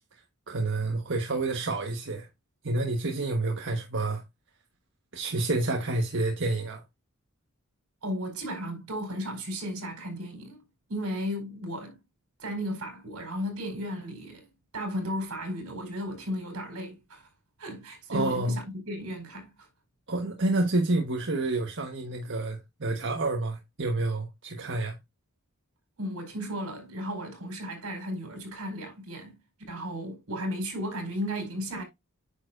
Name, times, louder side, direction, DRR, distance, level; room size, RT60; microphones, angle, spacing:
voice 1, 0.5-2.3 2.6-4.2 5.1-6.8 18.1-18.5 20.1-24.9, right 2 dB, 55° right, 1.4 m, -29 dB
voice 2, 8.0-10.6 10.9-12.0 12.4-14.5 14.7-17.3 17.6-19.7 26.0-29.4 29.7-31.8, equal, 75° right, 4.6 m, -35 dB
9.5 x 6.6 x 2.6 m
head